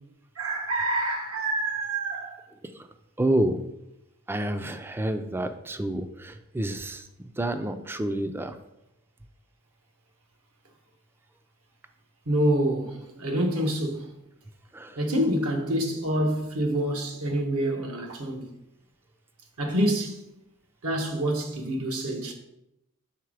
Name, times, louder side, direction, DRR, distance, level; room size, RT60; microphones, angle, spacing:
voice 1, 0.4-2.4 12.3-14.1 15.0-18.5 19.6-20.3 20.8-22.3, right 1 dB, 75° right, 1.0 m, -27 dB
voice 2, 3.2-3.6 4.3-8.6 14.7-15.0, right 1 dB, 10° right, 0.3 m, -29 dB
5.8 x 4.0 x 4.8 m
head